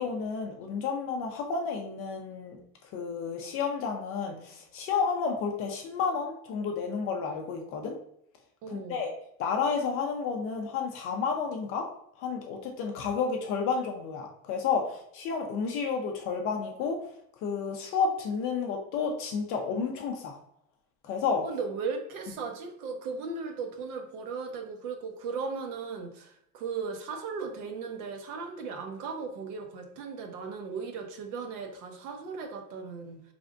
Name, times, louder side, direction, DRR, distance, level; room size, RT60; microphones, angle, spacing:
voice 1, 0.0-2.6 2.9-8.0 8.7-9.1 9.4-11.9 12.2-17.0 17.4-20.3 21.0-21.5, left 5 dB, 30° left, 2 dB, 0.4 m, -31 dB
voice 2, 8.6-9.0 21.4-33.2, right 5 dB, 65° right, 4 dB, 0.9 m, -37 dB
4.0 x 3.4 x 2.5 m, 0.70 s
supercardioid pair, 135°, 46 cm